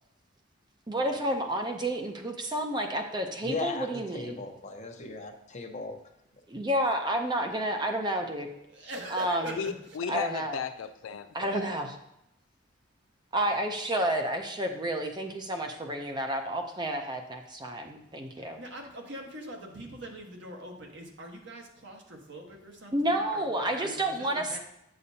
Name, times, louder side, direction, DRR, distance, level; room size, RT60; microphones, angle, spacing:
voice 1, 0.9-4.4 6.5-8.5 9.1-9.6 10.1-10.6 11.3-12.0 13.3-18.6 22.9-24.6, right 1 dB, 20° right, 4 dB, 0.5 m, -30 dB
voice 2, 3.4-6.0, left 3 dB, 35° left, 2 dB, 0.9 m, -37 dB
voice 3, 8.7-9.7 18.4-24.6, right 1 dB, 60° right, 1 dB, 1.3 m, -43 dB
voice 4, 9.6-11.8, left 6 dB, 80° left, 8 dB, 0.4 m, -35 dB
8.6 x 6.8 x 2.8 m, 0.79 s
head